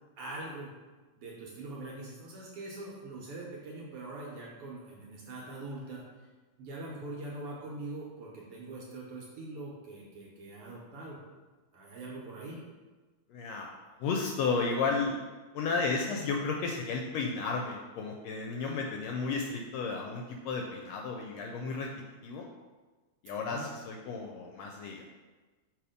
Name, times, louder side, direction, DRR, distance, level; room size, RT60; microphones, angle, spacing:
voice 1, 0.2-0.7 1.2-6.0 6.6-11.2 11.7-12.6 23.4-23.7, right 2 dB, 60° right, -4 dB, 1.7 m, -43 dB
voice 2, 13.3-13.7 14.0-15.2 15.5-21.9 22.2-22.5 23.2-25.1, left 4 dB, 80° left, 2 dB, 1.6 m, -33 dB
5.9 x 3.4 x 5.0 m, 1.3 s
omnidirectional pair, 3.3 m